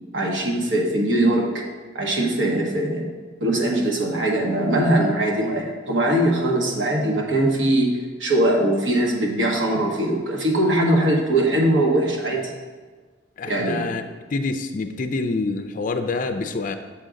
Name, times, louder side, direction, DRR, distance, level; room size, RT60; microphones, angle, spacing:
voice 1, 0.1-1.6 1.9-3.1 3.4-12.5 13.4-14.0, right 1 dB, 85° right, 0 dB, 1.2 m, -21 dB
voice 2, 13.4-14.0 14.3-16.8, left 3 dB, 45° left, 8 dB, 0.4 m, -26 dB
7.4 x 3.7 x 5.1 m, 1.4 s
head